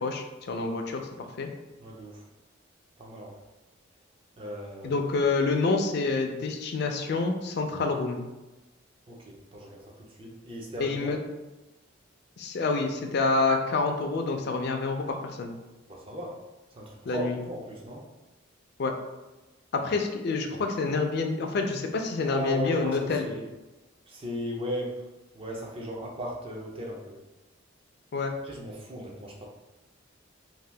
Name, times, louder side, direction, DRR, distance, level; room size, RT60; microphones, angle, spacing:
voice 1, 0.0-1.1 1.4-1.5 4.8-8.2 10.8-11.2 12.4-15.5 17.0-17.3 18.8-18.9 19.7-23.2 28.1-28.3, left 3 dB, 55° left, 4 dB, 0.4 m, -27 dB
voice 2, 1.8-2.2 3.0-3.4 4.4-5.1 9.1-11.1 15.9-16.4 16.7-18.0 22.3-23.4 24.1-25.0 25.3-27.2 28.4-29.5, equal, 30° right, -1 dB, 0.5 m, -37 dB
2.7 x 2.2 x 3.3 m, 1.1 s
head